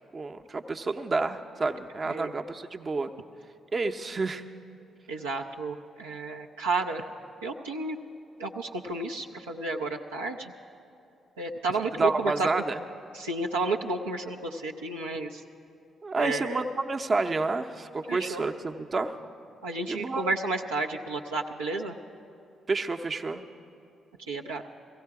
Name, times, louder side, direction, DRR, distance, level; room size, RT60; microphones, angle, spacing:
voice 1, 0.1-3.1 3.7-4.4 12.0-12.8 16.0-19.2 19.9-20.3 22.7-23.4, right 3 dB, 40° right, 6 dB, 0.7 m, -29 dB
voice 2, 5.1-7.1 7.4-8.0 8.4-10.5 11.4-12.5 13.1-15.4 16.2-16.6 18.1-18.4 19.6-22.0 24.3-24.6, right 3 dB, 85° right, -2 dB, 0.5 m, -31 dB
16.5 x 16.0 x 4.7 m, 2.7 s
hypercardioid pair, 40°, 0 cm